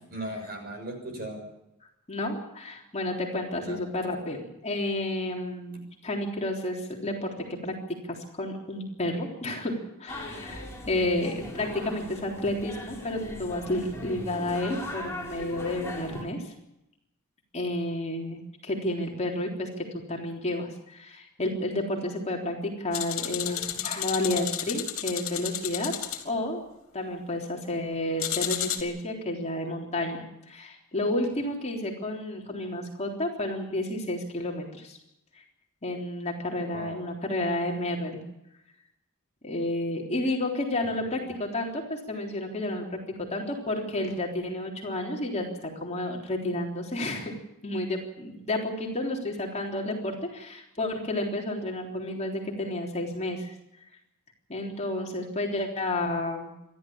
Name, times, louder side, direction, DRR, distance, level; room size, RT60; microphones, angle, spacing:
voice 1, 0.1-1.4 3.6-3.8 36.7-37.0 41.0-41.4, right 1 dB, 45° right, 4 dB, 6.5 m, -38 dB
voice 2, 2.1-7.8 8.1-16.5 17.5-26.0 26.2-26.7 26.9-35.0 35.3-35.4 35.8-38.2 39.4-47.3 47.6-53.5 54.5-56.5, left 1 dB, 30° left, 0 dB, 3.7 m, -31 dB
sound 1, 10.1-16.2, left 1 dB, 10° left, 5.3 m, -39 dB
sound 2, 22.9-26.2 28.2-28.8, left 11 dB, 70° left, 3.1 m, -32 dB
27.0 x 12.5 x 8.7 m, 0.89 s
head